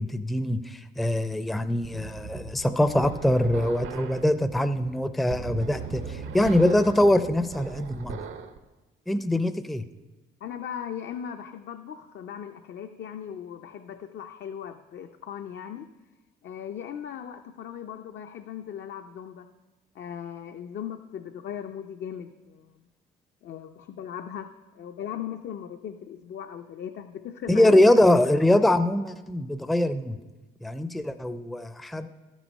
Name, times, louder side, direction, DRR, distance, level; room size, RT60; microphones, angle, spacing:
voice 1, 0.0-8.2 9.1-9.8 27.5-30.2 30.6-32.1, left 1 dB, ahead, 11 dB, 0.4 m, -23 dB
sound 1, 1.8-8.6, right 6 dB, 80° right, 0.7 m, -39 dB
voice 2, 10.4-15.9 16.4-19.5 19.9-22.8 23.4-24.5 24.7-27.8, left 9 dB, 60° left, 6 dB, 0.5 m, -38 dB
12.5 x 6.2 x 5.4 m, 1.2 s
cardioid pair, 90°, 20 cm